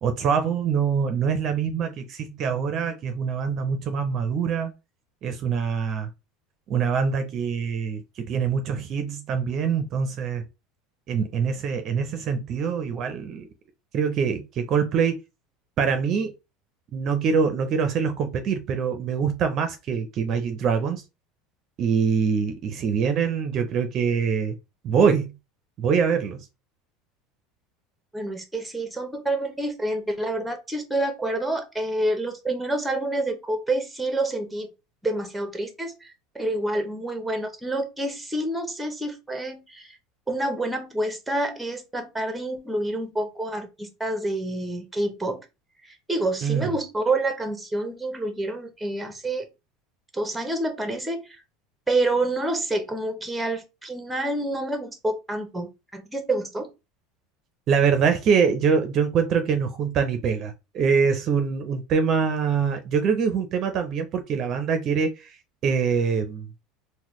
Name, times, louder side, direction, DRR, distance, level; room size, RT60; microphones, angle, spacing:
voice 1, 0.0-4.7 5.2-6.1 6.7-10.4 11.1-13.5 13.9-15.2 15.8-16.3 16.9-21.0 21.8-24.6 24.8-25.3 25.8-26.4 46.4-46.7 57.7-65.4 65.6-66.5, right 6 dB, 45° right, 0.5 m, -24 dB
voice 2, 28.1-34.7 35.0-40.0 40.3-45.4 45.8-49.5 50.1-51.4 51.9-56.7, right 2 dB, 5° right, 0.8 m, -28 dB
3.9 x 2.1 x 3.0 m
supercardioid pair, 125°, 0 cm